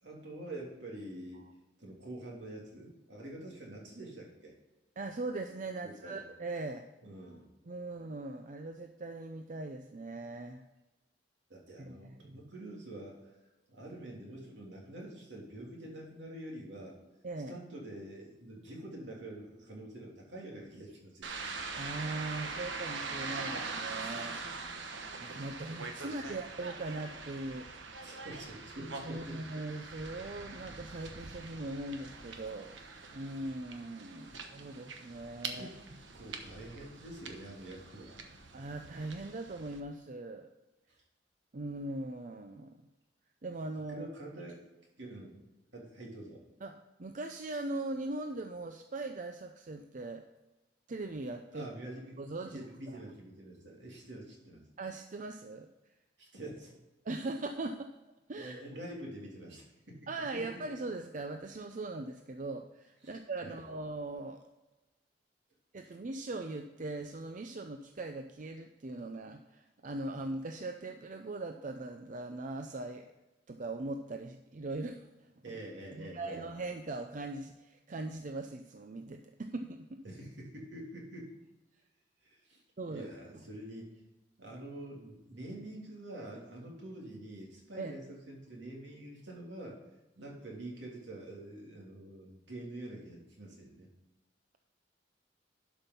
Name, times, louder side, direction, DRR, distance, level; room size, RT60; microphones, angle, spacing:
voice 1, 0.0-1.4 1.8-4.5 5.8-6.2 7.0-7.5 11.5-13.2 13.7-16.9 17.5-21.3 26.0-26.4 28.0-29.4 34.3-34.4 35.5-35.8 36.1-38.2 43.9-44.6 45.0-45.5 45.7-46.4 51.5-54.6 56.2-56.7 58.4-60.6 63.0-63.6 75.4-76.4 80.0-81.3 82.2-82.6 82.9-83.9 84.4-89.8 90.2-93.9, right 1 dB, 75° right, -2 dB, 3.1 m, -46 dB
voice 2, 5.0-6.9 7.7-10.6 11.8-12.4 17.2-17.6 21.7-24.4 25.2-28.1 28.8-32.7 33.1-35.7 38.5-40.5 41.5-42.8 43.4-44.1 46.6-46.7 47.0-50.2 50.9-51.7 52.2-53.0 54.8-55.7 57.0-57.9 58.3-58.6 60.1-64.5 65.7-73.1 73.5-75.3 75.9-80.0 82.8-83.1 87.8-87.9, right 2 dB, 45° right, 5 dB, 0.5 m, -40 dB
sound 1, 21.2-39.8, right 4 dB, 90° right, 1.1 m, -43 dB
11.5 x 5.4 x 5.5 m, 1.0 s
head